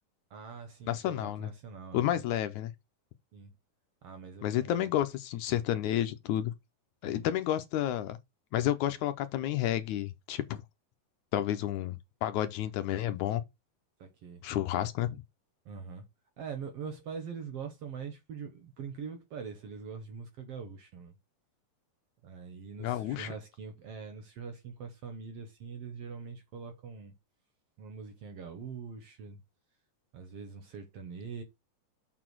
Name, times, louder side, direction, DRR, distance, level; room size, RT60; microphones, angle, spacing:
voice 1, 0.3-2.2 3.3-3.5 4.0-4.9 7.1-7.2 14.0-14.4 15.7-16.0 16.4-21.2 22.2-27.1 27.8-29.4 30.1-31.4, right 6 dB, 60° right, 1.7 m, -43 dB
voice 2, 0.9-1.5 1.9-2.7 4.4-6.5 7.0-8.2 8.5-10.6 11.3-13.4 14.4-15.2 22.8-23.3, left 12 dB, 80° left, 2.0 m, -31 dB
6.8 x 4.0 x 6.1 m
omnidirectional pair, 3.7 m